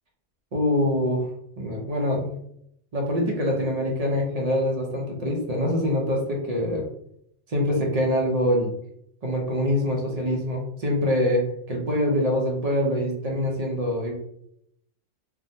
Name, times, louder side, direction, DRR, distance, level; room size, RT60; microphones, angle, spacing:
voice 1, 0.5-1.2 1.6-2.3 2.9-6.8 7.5-8.7 9.2-11.4 11.7-14.1, left 1 dB, 40° right, -1 dB, 0.6 m, -24 dB
3.5 x 2.1 x 2.6 m, 0.73 s
omnidirectional pair, 1.3 m